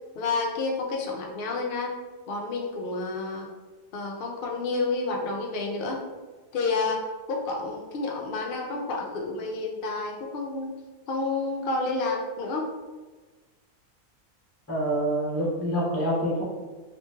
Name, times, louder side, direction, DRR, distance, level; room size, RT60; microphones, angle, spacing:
voice 1, 0.2-1.9 2.3-3.5 3.9-6.0 6.5-10.7 11.1-12.7, left 3 dB, 70° left, 0 dB, 0.5 m, -30 dB
voice 2, 14.7-16.4, right 1 dB, 15° left, -5 dB, 0.5 m, -26 dB
3.0 x 2.8 x 2.2 m, 1.3 s
omnidirectional pair, 1.4 m